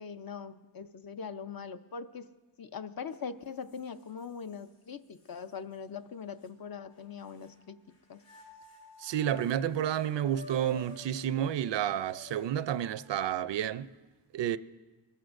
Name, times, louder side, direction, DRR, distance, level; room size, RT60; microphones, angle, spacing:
voice 1, 0.0-2.3 2.6-7.8 8.1-8.2, left 6 dB, 50° left, 0.6 m, -41 dB
sound 1, 3.1-3.2 3.7-4.6 5.2-5.3 6.4-7.6 8.1-13.1, left 3 dB, 75° left, 4.5 m, -52 dB
voice 2, 9.0-13.9 14.3-14.6, right 10 dB, 70° right, 0.5 m, -30 dB
21.5 x 14.0 x 2.6 m
wide cardioid pair, 85°, 44 cm